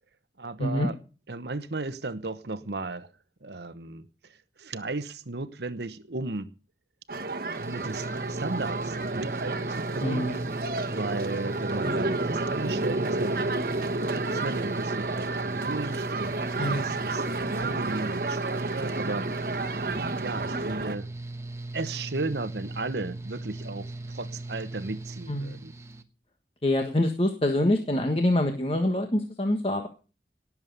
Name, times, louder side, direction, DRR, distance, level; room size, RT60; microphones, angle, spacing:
voice 1, 0.4-1.0 1.3-3.1 3.4-6.5 7.6-10.3 10.9-13.4 14.3-19.8 20.2-21.1 21.7-25.7, right 3 dB, 70° right, 1.0 m, -35 dB
sound 1, 7.1-20.9, right 2 dB, 55° right, 1.2 m, -31 dB
Mechanical fan, 7.6-26.0, right 2 dB, 15° right, 1.1 m, -38 dB
voice 2, 10.0-10.4 16.6-16.9 25.3-25.5 26.6-29.9, left 1 dB, 30° left, 1.5 m, -25 dB
18.0 x 7.4 x 6.7 m
head